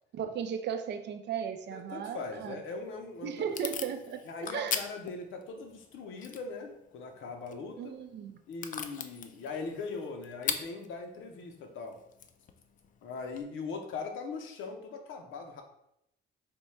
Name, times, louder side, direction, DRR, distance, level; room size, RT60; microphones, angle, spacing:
voice 1, 0.1-2.6 3.2-4.2 4.5-4.8 7.8-8.4, right 8 dB, 60° right, 7 dB, 0.5 m, -36 dB
voice 2, 1.7-3.6 4.2-8.0 8.5-12.0 13.0-15.6, left 4 dB, 80° left, 4 dB, 0.7 m, -40 dB
Packing tape duct tape / Tearing, 2.6-13.4, left 7 dB, 40° left, 0.4 m, -42 dB
3.5 x 2.2 x 4.1 m, 0.81 s
cardioid pair, 90°, 20 cm